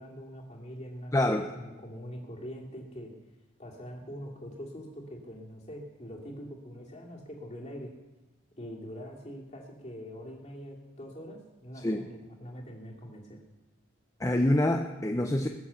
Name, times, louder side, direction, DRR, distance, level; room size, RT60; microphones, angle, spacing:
voice 1, 0.0-3.1 3.6-7.9 8.6-13.4, equal, 35° left, -1 dB, 2.6 m, -43 dB
voice 2, 1.1-1.5 11.8-12.1 14.2-15.5, left 1 dB, 15° left, 4 dB, 0.7 m, -26 dB
21.0 x 7.1 x 7.0 m, 1.1 s
head